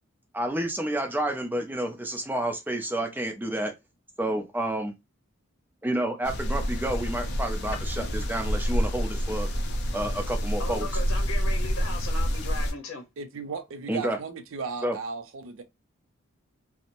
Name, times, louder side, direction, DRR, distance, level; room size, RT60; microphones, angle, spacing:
voice 1, 0.3-3.7 4.2-4.9 5.8-9.5 9.9-10.9 13.9-14.2 14.8-15.0, right 1 dB, 10° right, 0.4 m, -29 dB
sound 1, 6.2-12.7, equal, 55° left, 0.4 m, -28 dB
voice 2, 10.6-13.0, left 3 dB, 85° left, 0.7 m, -37 dB
voice 3, 13.2-15.6, right 4 dB, 75° right, 0.4 m, -36 dB
2.5 x 2.0 x 2.9 m
head